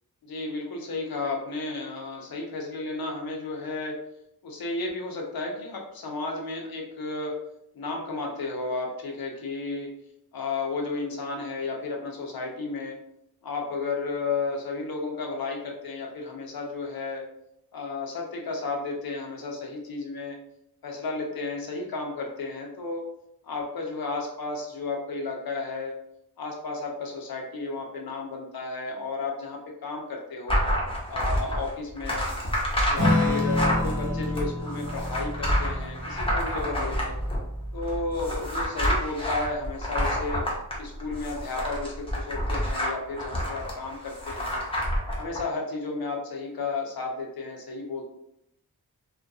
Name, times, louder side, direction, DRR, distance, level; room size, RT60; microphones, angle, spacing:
voice 1, 0.2-4.0 4.4-7.4 7.7-9.9 10.3-13.0 13.4-17.2 17.7-20.4 20.8-23.1 23.4-26.0 26.4-30.6 31.1-32.3 32.9-37.2 37.7-40.4 40.8-44.6 45.2-48.0, left 3 dB, 70° left, 0 dB, 0.6 m, -33 dB
sound 1, 30.5-45.4, equal, 15° left, 0.7 m, -28 dB
Acoustic guitar / Strum, 32.9-37.8, left 1 dB, 50° right, 1.0 m, -29 dB
2.3 x 2.2 x 2.6 m, 0.78 s
wide cardioid pair, 70°, 38 cm